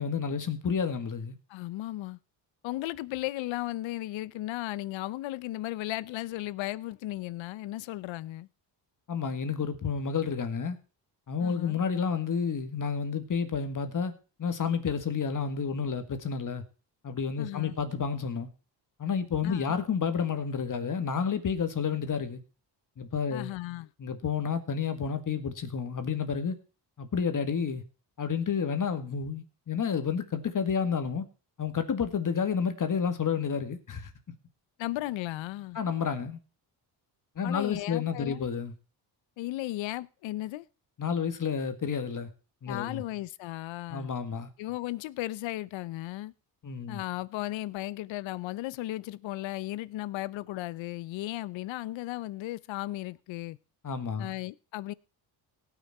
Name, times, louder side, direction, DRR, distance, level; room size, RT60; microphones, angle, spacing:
voice 1, 0.0-1.4 9.1-10.8 11.3-14.1 14.4-16.6 17.0-18.5 19.0-22.4 23.0-23.5 24.0-26.6 27.0-27.8 28.2-31.2 31.6-34.1 35.7-36.4 37.4-38.7 41.0-42.3 42.6-43.0 43.9-44.5 46.6-47.0 53.8-54.3, left 6 dB, 45° left, 2.0 m, -30 dB
voice 2, 1.5-2.2 2.6-8.5 11.4-11.8 17.4-17.8 19.4-19.7 23.3-23.9 34.8-35.8 37.4-38.4 39.4-40.6 42.7-44.1 44.6-46.3 46.9-53.6 54.2-54.9, left 16 dB, 85° left, 0.7 m, -35 dB
17.5 x 6.3 x 4.2 m
cardioid pair, 90°, 45 cm